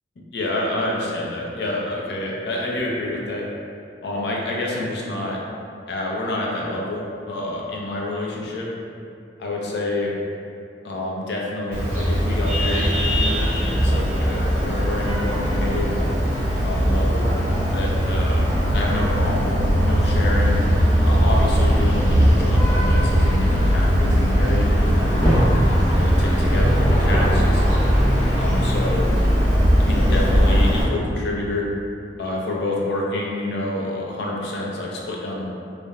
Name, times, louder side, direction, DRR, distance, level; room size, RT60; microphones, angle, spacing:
voice 1, 0.3-3.4 4.0-5.4 5.9-8.7 9.4-10.1 10.8-16.0 16.6-17.3 17.6-18.5 18.7-20.6 21.0-25.4 25.9-27.6 28.3-29.1 29.9-31.7 32.2-35.4, left 1 dB, 65° left, -3 dB, 0.4 m, -28 dB
Vehicle horn car horn honking, 11.7-30.8, equal, 10° right, 1.0 m, -19 dB
sound 1, 21.9-28.9, equal, 25° left, 0.7 m, -28 dB
2.4 x 2.1 x 2.9 m, 2.5 s
head